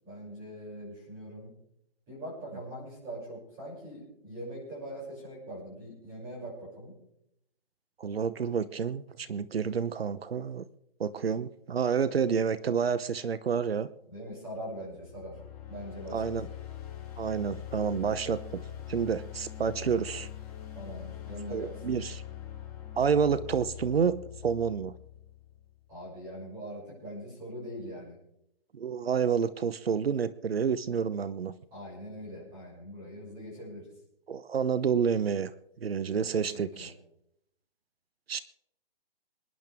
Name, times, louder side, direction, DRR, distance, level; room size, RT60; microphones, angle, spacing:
voice 1, 0.0-1.5 2.1-6.9 14.1-15.4 15.7-16.3 20.7-21.8 25.9-28.2 31.7-33.9 36.3-36.9, equal, 15° right, -5 dB, 6.8 m, -42 dB
voice 2, 8.0-10.6 11.0-13.9 16.1-16.5 17.2-18.6 18.9-20.3 21.5-22.2 22.9-24.9 28.7-31.5 34.3-35.5 35.8-36.9 38.3-38.4, right 6 dB, 90° right, 16 dB, 0.9 m, -29 dB
sound 1, 14.8-25.8, left 10 dB, 10° left, 1.7 m, -43 dB
27.5 x 10.5 x 3.6 m, 0.79 s
hypercardioid pair, 175°, 29 cm